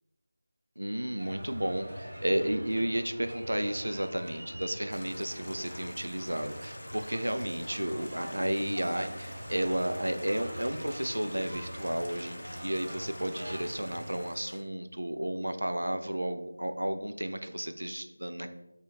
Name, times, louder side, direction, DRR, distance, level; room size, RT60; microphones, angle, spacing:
voice 1, 0.8-18.5, right 1 dB, 80° right, 8 dB, 0.3 m, -32 dB
sound 1, 1.2-14.3, equal, 45° right, 0.9 m, -44 dB
Stream, 4.9-14.6, left 1 dB, 65° left, 0.5 m, -47 dB
3.4 x 2.2 x 2.8 m, 0.92 s
figure-of-eight pair, 170°, 0 cm